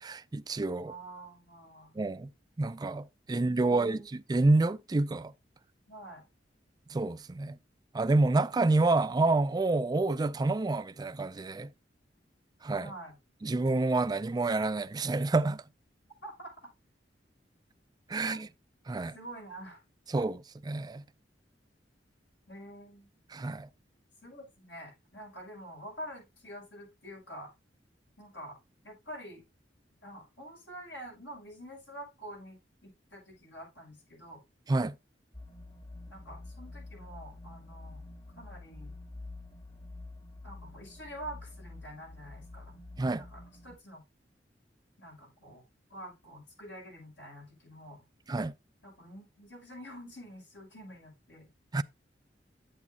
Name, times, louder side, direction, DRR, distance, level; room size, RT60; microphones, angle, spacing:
voice 1, 0.0-0.9 2.0-2.3 2.6-5.3 6.9-7.6 7.9-11.7 12.6-12.9 13.4-15.6 18.1-18.5 18.9-19.1 20.1-21.0 23.3-23.7 34.7-34.9 43.0-43.2 48.3-48.5 51.7-51.8, right 2 dB, 20° right, 0.4 m, -28 dB
voice 2, 0.8-1.9 3.3-4.0 5.9-6.3 12.8-13.1 16.2-16.5 18.2-18.4 19.1-19.8 22.5-23.1 24.2-27.5 28.2-28.6 28.8-29.4 30.0-34.4 36.1-38.1 38.4-38.9 40.4-42.8 43.1-44.0 45.0-45.6 45.9-48.0 48.8-51.5, right 1 dB, 80° left, 6.5 m, -47 dB
sound 1, 35.3-43.8, left 2 dB, 35° left, 1.5 m, -47 dB
8.4 x 8.3 x 2.8 m
head